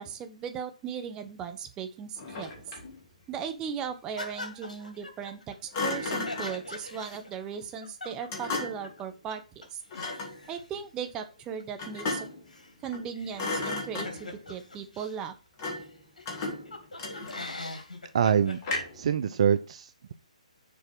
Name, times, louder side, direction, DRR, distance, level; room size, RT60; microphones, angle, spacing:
voice 1, 0.0-2.6 3.3-9.4 9.7-9.8 10.5-12.3 12.8-15.3, right 7 dB, 20° right, 7 dB, 1.1 m, -37 dB
Thump thud, 2.2-3.0 5.7-6.6 8.3-8.9 9.9-10.4 11.8-12.5 12.8-13.1 13.3-14.4 15.6-15.9 16.3-17.6 18.6-19.1, left 3 dB, 30° left, 2.7 m, -34 dB
sound 1, 4.2-9.0 9.3-9.4 9.6-15.3 15.8-15.9 16.2-18.8, left 2 dB, 80° left, 2.5 m, -43 dB
voice 2, 18.1-18.6 18.9-20.1, right 8 dB, 55° right, 12 dB, 0.6 m, -25 dB
7.0 x 4.7 x 6.1 m, 0.32 s
figure-of-eight pair, 140°, 4 cm